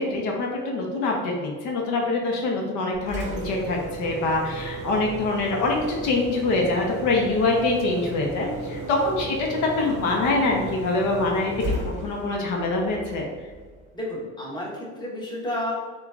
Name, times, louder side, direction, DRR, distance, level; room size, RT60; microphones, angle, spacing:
voice 1, 0.0-13.3, left 2 dB, 75° left, 0 dB, 0.8 m, -25 dB
Engine, 2.9-13.9, right 2 dB, 25° right, 0.8 m, -35 dB
voice 2, 8.4-9.0 13.9-15.7, left 1 dB, 15° left, -6 dB, 1.1 m, -32 dB
6.9 x 2.4 x 2.4 m, 1.4 s
cardioid pair, 145°, 30 cm